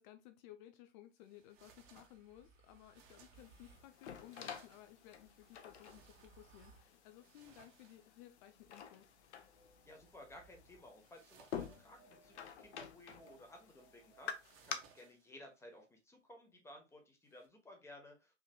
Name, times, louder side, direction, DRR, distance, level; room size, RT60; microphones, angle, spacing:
voice 1, 0.0-9.1, left 13 dB, 40° left, 8 dB, 0.5 m, -58 dB
sound 1, 1.2-8.5 11.0-12.5 14.2-15.6 17.3-17.5, right 6 dB, 35° right, 1.1 m, -67 dB
sound 2, 1.5-3.9 4.9-6.9 8.6-10.9 11.6-15.0, right 4 dB, 85° right, 1.6 m, -67 dB
sound 3, 3.3-14.7, left 8 dB, 60° left, 0.9 m, -50 dB
voice 2, 9.8-18.3, left 1 dB, 5° left, 3 dB, 1.1 m, -57 dB
4.7 x 3.1 x 2.2 m, 0.26 s
hypercardioid pair, 110°, 38 cm